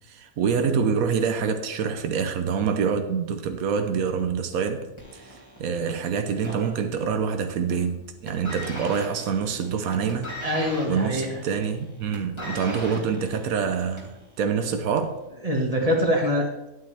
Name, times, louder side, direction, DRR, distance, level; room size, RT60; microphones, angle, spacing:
voice 1, 0.1-4.9 5.1-10.3 10.9-15.2, right 6 dB, 90° right, 7 dB, 1.2 m, -26 dB
sound 1, 5.0-7.3 7.6-8.0 8.3-14.2 15.0-15.1, equal, 20° left, 2.7 m, -39 dB
voice 2, 10.4-11.4 12.8-13.2 15.4-16.7, equal, 25° right, -1 dB, 1.9 m, -25 dB
11.5 x 9.1 x 3.4 m, 0.95 s
omnidirectional pair, 1.5 m